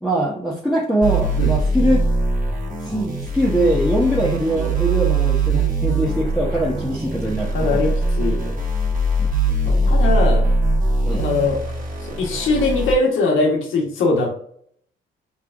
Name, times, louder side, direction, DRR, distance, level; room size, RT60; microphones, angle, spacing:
voice 1, 0.0-2.1 2.8-7.8 11.0-11.3, right 1 dB, ahead, -3 dB, 0.8 m, -22 dB
sound 1, 1.0-12.9, right 2 dB, 40° right, 1.2 m, -21 dB
voice 2, 7.5-8.6 9.6-10.5 11.2-11.6 12.2-14.4, left 3 dB, 85° left, 1 dB, 1.2 m, -21 dB
6.5 x 2.4 x 2.5 m, 0.63 s
cardioid pair, 90°, 20 cm